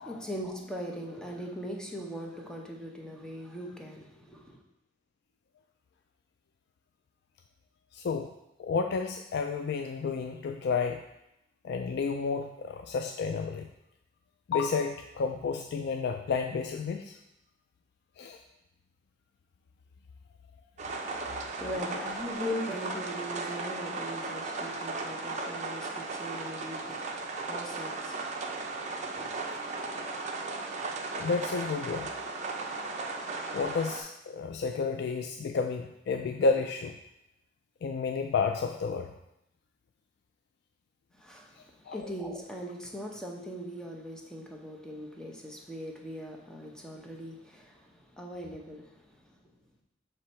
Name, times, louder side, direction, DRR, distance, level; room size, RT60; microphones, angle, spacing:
voice 1, 0.0-4.6 21.0-29.3 41.2-49.3, equal, 5° left, 0 dB, 0.7 m, -40 dB
voice 2, 7.9-8.3 8.6-11.0 11.6-13.7 14.5-17.2 18.2-18.4 21.7-21.8 31.1-32.1 33.5-37.0 37.8-39.1 41.9-42.1, left 5 dB, 60° left, 5 dB, 0.3 m, -31 dB
sound 1, 20.8-34.0, right 3 dB, 40° right, 0.6 m, -36 dB
6.8 x 3.3 x 4.3 m, 0.86 s
head